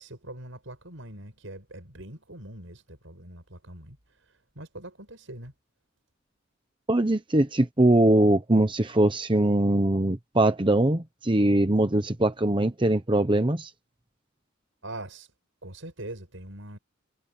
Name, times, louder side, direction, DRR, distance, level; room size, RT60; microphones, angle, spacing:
voice 1, 0.0-5.5 14.8-15.3 15.6-16.8, right 1 dB, 80° right, 6.2 m, -42 dB
voice 2, 6.9-13.7, right 1 dB, 25° right, 1.0 m, -22 dB
head